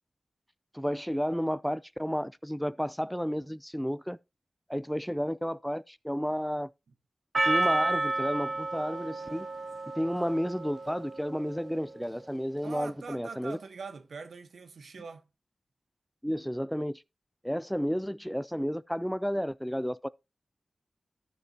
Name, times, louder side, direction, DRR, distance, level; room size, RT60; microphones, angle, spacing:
voice 1, 0.7-4.2 4.7-6.7 7.5-9.5 10.0-13.6 16.2-17.0 17.4-20.1, equal, ahead, 0.4 m, -32 dB
Percussion, 7.3-11.7, right 2 dB, 55° right, 1.1 m, -31 dB
voice 2, 12.6-15.2, right 4 dB, 90° right, 1.1 m, -42 dB
13.5 x 6.6 x 2.8 m
cardioid pair, 55°, 0 cm